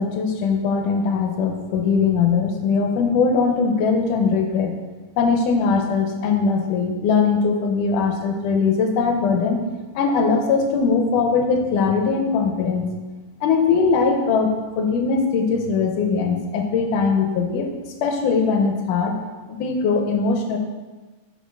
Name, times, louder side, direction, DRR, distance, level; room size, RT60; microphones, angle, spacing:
voice 1, 0.0-4.8 5.2-9.6 10.0-12.9 13.4-17.7 18.0-19.1 19.5-20.6, left 5 dB, 85° left, 4 dB, 2.2 m, -20 dB
9.4 x 4.5 x 3.6 m, 1.3 s
omnidirectional pair, 3.7 m